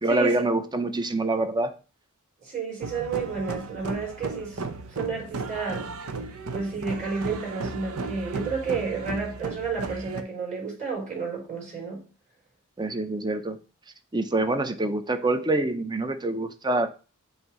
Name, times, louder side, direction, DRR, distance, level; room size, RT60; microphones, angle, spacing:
voice 1, 0.0-1.7 12.8-13.6 14.1-16.9, right 2 dB, 20° right, 0.6 m, -25 dB
voice 2, 2.4-4.6 4.9-5.9 6.5-12.0, right 4 dB, 35° right, 4.3 m, -31 dB
sound 1, 2.8-10.2, right 3 dB, 80° right, 0.7 m, -35 dB
8.2 x 2.7 x 6.0 m
head